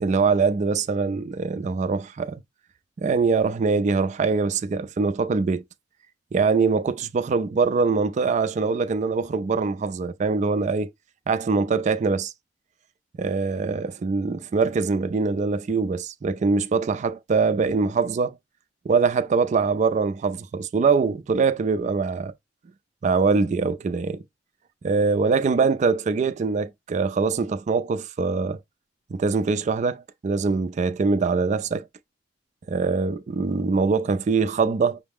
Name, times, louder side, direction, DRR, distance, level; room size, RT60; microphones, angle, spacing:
voice 1, 0.0-2.4 3.0-5.6 6.3-10.9 11.3-12.3 13.2-18.3 18.9-22.3 23.0-24.2 24.8-28.6 29.1-31.9 32.7-35.0, right 4 dB, 40° right, 0.3 m, -23 dB
5.5 x 2.0 x 3.5 m
head